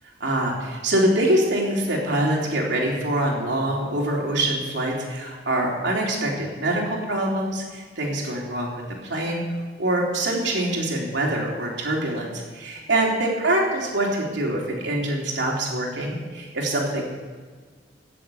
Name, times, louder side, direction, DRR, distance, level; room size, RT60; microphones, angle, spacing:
voice 1, 0.2-8.7 9.0-9.4 9.8-17.0, right 1 dB, 65° right, -2 dB, 3.5 m, -24 dB
17.0 x 7.7 x 7.1 m, 1.5 s
head